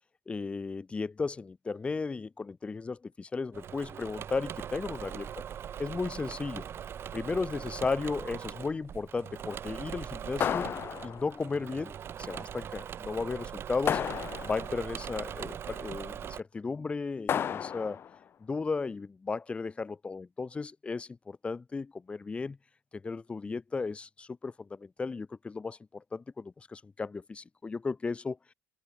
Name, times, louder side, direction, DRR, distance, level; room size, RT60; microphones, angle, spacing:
voice 1, 0.3-5.4 5.8-6.7 7.1-10.7 11.0-14.0 14.4-18.0 18.4-22.6 22.9-28.4, left 4 dB, 15° left, 4.7 m, -35 dB
Engine / Mechanisms, 3.5-16.4, right 9 dB, 35° right, 3.1 m, -41 dB
sound 1, 10.4-11.5 13.9-14.8 17.3-18.1, left 8 dB, 30° left, 2.8 m, -32 dB
cardioid pair, 145°, 7 cm